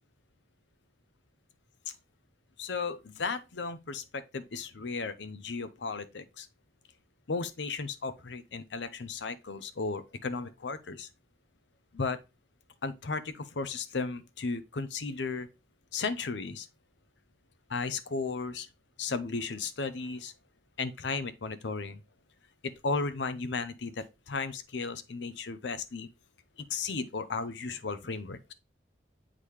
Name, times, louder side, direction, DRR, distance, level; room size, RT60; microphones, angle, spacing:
voice 1, 2.6-6.5 7.3-11.1 11.9-12.2 12.8-15.5 15.9-16.7 17.7-18.7 19.0-20.3 20.8-22.0 22.6-26.1 26.7-28.5, left 4 dB, 85° left, 0.7 m, -35 dB
8.3 x 3.8 x 3.1 m
head